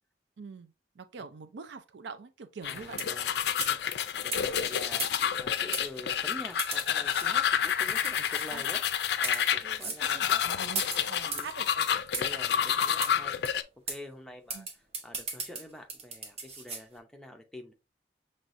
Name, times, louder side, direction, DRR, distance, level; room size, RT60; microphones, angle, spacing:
voice 1, 0.4-3.1 8.5-8.6 9.8-11.9 14.5-14.7, right 5 dB, 80° right, 0.4 m, -44 dB
sound 1, 2.6-13.6, left 9 dB, 65° left, 0.4 m, -29 dB
voice 2, 2.7-5.0 5.4-8.8 9.2-11.5 12.1-13.4 13.9-17.7, left 1 dB, 5° left, 0.6 m, -47 dB
sound 2, 3.0-3.3 3.6-3.8 4.3-4.4 5.0-5.4 5.7-5.9 6.6-7.3 8.0-8.5 9.1-9.5 9.8-10.0 10.7-11.5 12.1-12.4 13.0-13.1 13.4-13.5 13.9-14.0 14.5-16.8, right 4 dB, 35° right, 1.0 m, -36 dB
5.9 x 3.1 x 2.5 m
head